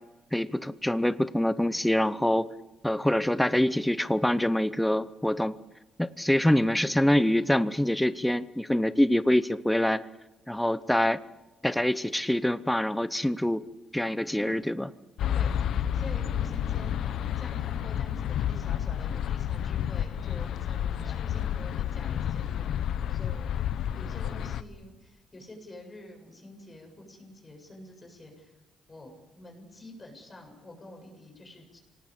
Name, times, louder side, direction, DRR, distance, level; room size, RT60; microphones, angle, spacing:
voice 1, 0.3-2.5 2.8-5.5 6.0-10.0 10.5-11.2 11.6-13.6 13.9-14.9, left 1 dB, 5° left, 14 dB, 0.8 m, -25 dB
sound 1, 15.2-24.6, left 9 dB, 75° left, 1.0 m, -30 dB
voice 2, 15.3-23.5 23.9-28.5 28.9-31.8, left 1 dB, 25° left, 3 dB, 7.6 m, -47 dB
26.0 x 18.5 x 8.4 m, 1.0 s
cardioid pair, 90°, 0 cm